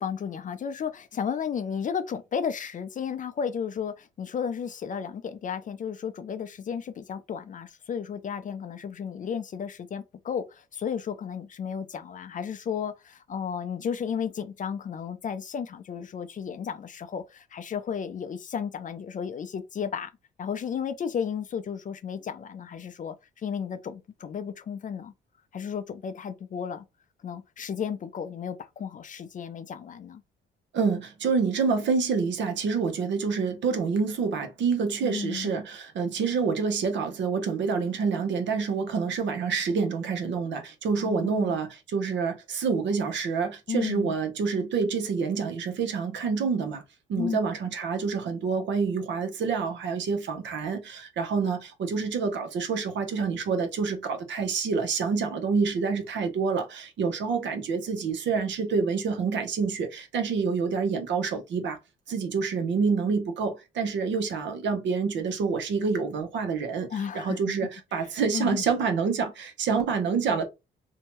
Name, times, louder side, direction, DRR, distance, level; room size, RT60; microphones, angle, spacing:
voice 1, 0.0-20.1 20.4-25.1 25.5-26.8 27.2-30.2 35.0-35.5 40.9-41.6 43.7-44.1 47.2-47.4 66.9-67.4 67.9-68.6, left 7 dB, 40° left, 0.4 m, -33 dB
voice 2, 30.7-46.8 47.1-61.8 62.1-66.9 67.1-70.4, right 5 dB, 65° right, 0.8 m, -27 dB
2.7 x 2.2 x 3.0 m
cardioid pair, 90°, 20 cm